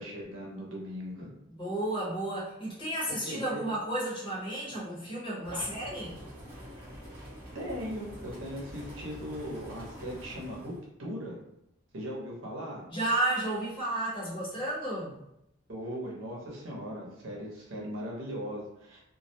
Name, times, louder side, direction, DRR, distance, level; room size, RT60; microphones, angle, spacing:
voice 1, 0.0-1.3 3.2-3.6 5.5-5.6 7.5-10.7 11.0-11.4 11.9-12.8 15.7-19.0, equal, 80° right, -3 dB, 0.8 m, -38 dB
voice 2, 1.5-6.2 12.9-15.1, right 1 dB, 25° left, -6 dB, 0.8 m, -32 dB
sound 1, 5.4-10.8, equal, 30° right, 0.9 m, -46 dB
2.3 x 2.1 x 2.7 m, 0.81 s
head